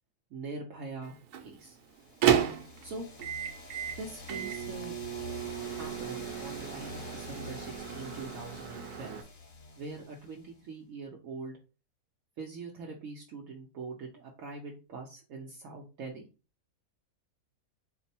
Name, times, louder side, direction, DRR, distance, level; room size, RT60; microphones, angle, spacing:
voice 1, 0.3-1.8 2.8-3.1 4.0-4.9 5.6-9.2 9.8-11.6 12.4-16.3, right 3 dB, 65° right, -1 dB, 1.0 m, -43 dB
Microwave oven, 1.0-9.2, right 9 dB, 90° right, 1.2 m, -33 dB
sound 1, 1.9-10.6, left 3 dB, 45° left, 0.8 m, -47 dB
4.4 x 2.1 x 4.1 m, 0.33 s
omnidirectional pair, 1.6 m